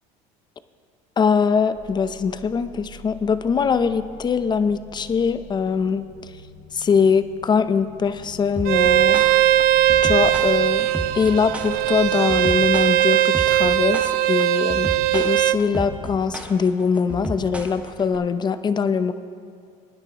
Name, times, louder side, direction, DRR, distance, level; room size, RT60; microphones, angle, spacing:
voice 1, 1.2-6.0 6.7-9.2 10.0-10.9 11.1-19.1, left 6 dB, 25° left, 12 dB, 0.6 m, -22 dB
sound 1, 1.7-12.1, equal, 35° right, 2.3 m, -44 dB
sound 2, 8.6-18.2, right 1 dB, 10° right, 1.3 m, -33 dB
Bowed string instrument, 8.7-15.6, right 13 dB, 65° right, 0.5 m, -19 dB
22.0 x 10.0 x 2.9 m, 2.3 s
supercardioid pair, 95°, 17 cm